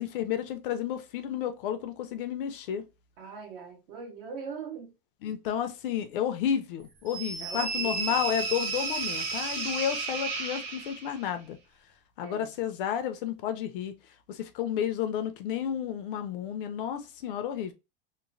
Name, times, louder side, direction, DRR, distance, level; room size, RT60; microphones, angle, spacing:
voice 1, 0.0-2.8 5.2-11.6 12.2-13.9 14.3-17.7, left 9 dB, 65° left, 0.6 m, -31 dB
voice 2, 3.2-4.9 7.4-8.2 12.2-12.5, right 6 dB, 60° right, 1.2 m, -41 dB
sound 1, 7.1-11.2, right 4 dB, 80° right, 0.9 m, -33 dB
3.0 x 2.0 x 2.5 m
supercardioid pair, 165°, 30 cm